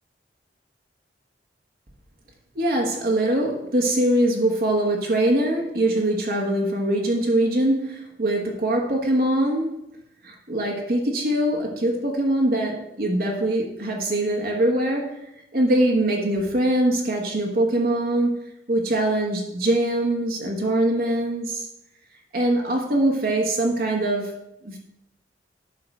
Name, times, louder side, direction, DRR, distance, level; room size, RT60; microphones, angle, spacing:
voice 1, 2.5-9.8 10.2-18.4 18.7-21.7 22.3-24.3 24.6-24.8, right 1 dB, 50° right, 0 dB, 1.2 m, -23 dB
10.5 x 3.8 x 6.5 m, 0.85 s
head